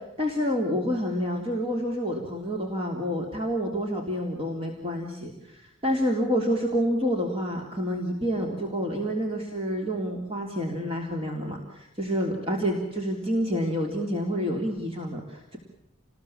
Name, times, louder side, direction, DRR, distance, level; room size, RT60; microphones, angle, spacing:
voice 1, 0.2-15.6, equal, 30° right, 0 dB, 3.5 m, -28 dB
29.0 x 20.5 x 7.3 m, 0.88 s
head